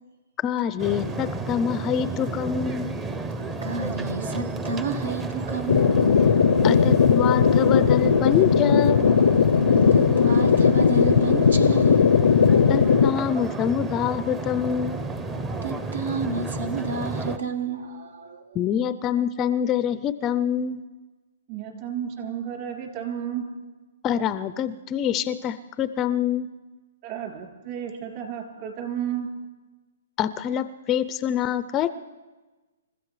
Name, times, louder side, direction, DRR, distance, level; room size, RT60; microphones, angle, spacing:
voice 1, 0.4-2.9 6.6-9.1 12.7-15.1 18.5-20.8 24.0-26.5 30.2-31.9, left 9 dB, 20° left, 13 dB, 0.4 m, -26 dB
sound 1, 0.8-17.4, right 3 dB, 15° right, 0.7 m, -32 dB
voice 2, 3.2-6.0 9.5-12.3 15.6-18.6, right 4 dB, 80° right, 8 dB, 1.4 m, -31 dB
sound 2, 5.7-13.1, left 6 dB, 80° left, 0.5 m, -18 dB
voice 3, 21.5-23.5 27.0-29.3, right 9 dB, 35° right, 2 dB, 3.1 m, -32 dB
28.5 x 14.5 x 3.2 m, 1.2 s
hypercardioid pair, 150°, 0 cm